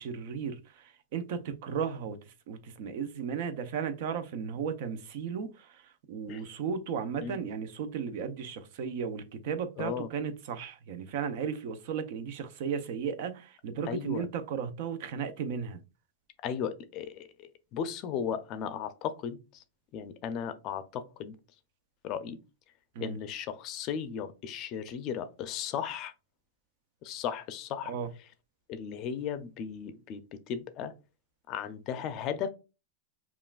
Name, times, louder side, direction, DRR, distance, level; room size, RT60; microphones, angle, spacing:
voice 1, 0.0-15.8 22.9-23.2 27.8-28.1, right 7 dB, 55° right, 0.6 m, -35 dB
voice 2, 9.8-10.1 13.9-14.3 16.4-19.6 19.9-21.4 22.0-22.4 23.0-26.1 27.0-27.9 28.7-30.9 31.5-32.5, left 8 dB, 35° left, 0.5 m, -36 dB
5.6 x 2.4 x 2.4 m
supercardioid pair, 145°, 0 cm